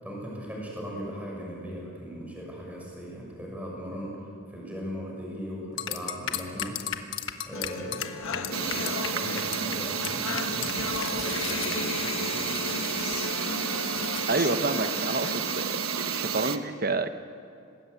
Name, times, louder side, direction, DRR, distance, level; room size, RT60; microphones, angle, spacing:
voice 1, 0.0-4.1 4.5-6.7 7.4-12.6, equal, 5° right, -3 dB, 6.4 m, -38 dB
sound 1, 5.8-9.1 9.4-9.7 10.0-10.1 10.4-14.4, left 9 dB, 60° left, 1.2 m, -36 dB
sound 2, 7.5-15.5, left 4 dB, 80° left, 1.3 m, -36 dB
sound 3, 8.5-16.6, right 6 dB, 80° right, 1.3 m, -31 dB
voice 2, 14.3-17.1, right 3 dB, 45° right, 9 dB, 1.0 m, -29 dB
26.5 x 20.0 x 8.2 m, 2.5 s
head